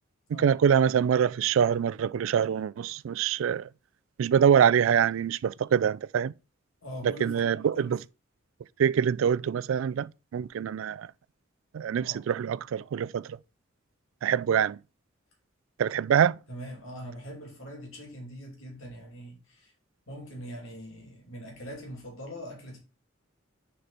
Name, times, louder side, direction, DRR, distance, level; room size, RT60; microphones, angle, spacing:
voice 1, 0.3-3.7 4.2-6.3 7.0-8.0 8.8-11.1 11.7-13.4 14.2-14.8 15.8-16.4, right 8 dB, 80° right, 0.3 m, -25 dB
voice 2, 6.8-7.5 7.8-8.0 12.0-12.2 16.5-19.7 20.1-22.8, equal, 85° left, 2.4 m, -42 dB
6.6 x 4.4 x 3.9 m
head